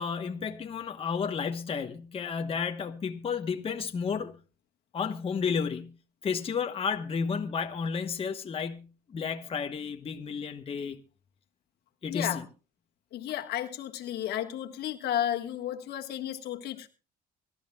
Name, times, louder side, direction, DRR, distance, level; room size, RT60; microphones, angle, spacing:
voice 1, 0.0-4.4 4.9-6.0 6.2-11.0 12.0-12.4, left 6 dB, 35° left, 1.1 m, -32 dB
voice 2, 12.1-12.4 13.1-16.9, left 11 dB, 75° left, 1.6 m, -33 dB
24.5 x 12.5 x 2.3 m
cardioid pair, 110°, 17 cm